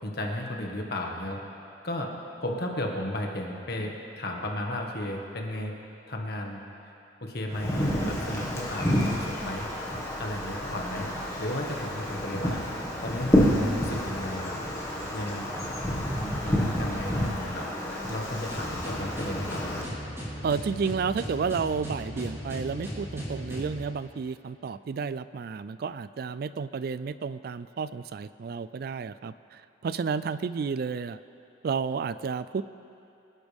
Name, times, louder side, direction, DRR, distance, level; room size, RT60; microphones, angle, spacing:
voice 1, 0.0-1.4 1.8-2.1 2.4-5.7 6.1-6.6 7.2-9.7 10.2-11.1 11.4-12.6 13.0-14.6 15.1-15.5 16.2-17.7 18.0-19.6, left 1 dB, 55° left, 0 dB, 1.7 m, -34 dB
Wind, 7.5-19.8, equal, 15° left, 1.7 m, -29 dB
sound 1, 18.5-23.8, equal, 15° right, 3.7 m, -37 dB
voice 2, 20.4-31.2 31.6-32.6, right 5 dB, 50° right, 15 dB, 0.3 m, -31 dB
25.5 x 11.5 x 3.5 m, 2.8 s
head